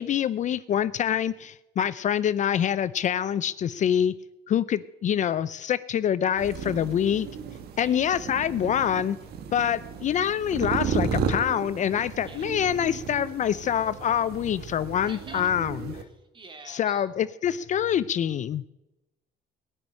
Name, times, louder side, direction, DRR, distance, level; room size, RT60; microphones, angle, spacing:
voice 1, 0.0-4.1 4.5-7.3 7.8-9.2 9.5-16.0 16.7-18.6, left 9 dB, 45° left, 15 dB, 0.5 m, -26 dB
sound 1, 6.4-16.0, right 6 dB, 70° right, 1.6 m, -34 dB
voice 2, 15.0-15.5 16.1-17.1, right 3 dB, 30° right, 5 dB, 2.5 m, -46 dB
18.5 x 6.2 x 9.8 m, 0.95 s
cardioid pair, 110°, 17 cm